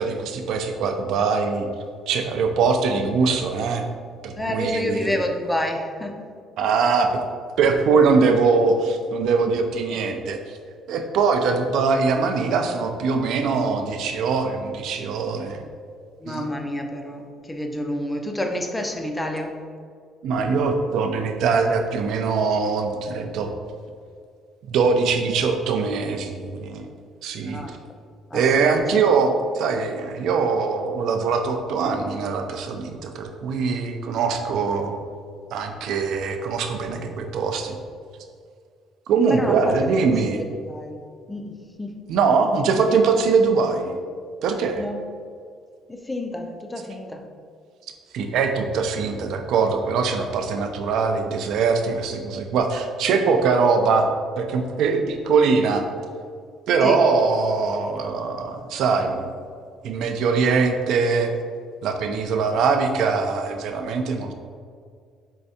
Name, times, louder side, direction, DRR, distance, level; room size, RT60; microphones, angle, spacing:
voice 1, 0.0-1.7 2.1-3.8 4.2-5.1 6.6-7.1 7.6-10.6 10.9-15.6 16.3-16.5 20.2-23.5 24.7-26.9 27.2-27.8 28.3-35.0 35.5-37.8 39.1-40.4 42.1-43.9 44.4-44.8 48.1-54.1 54.4-55.8 56.7-59.3 59.8-61.3 61.8-64.3, right 5 dB, 60° right, 5 dB, 0.4 m, -22 dB
voice 2, 4.3-6.3 9.9-10.0 16.2-19.6 27.5-27.7 28.3-28.8 39.2-39.7 40.4-41.0 41.3-41.9 42.8-42.9 44.8-45.0 45.9-47.2 56.8-57.1, left 1 dB, 10° left, 3 dB, 0.3 m, -29 dB
4.6 x 3.2 x 2.7 m, 2.1 s
cardioid pair, 170°, 0 cm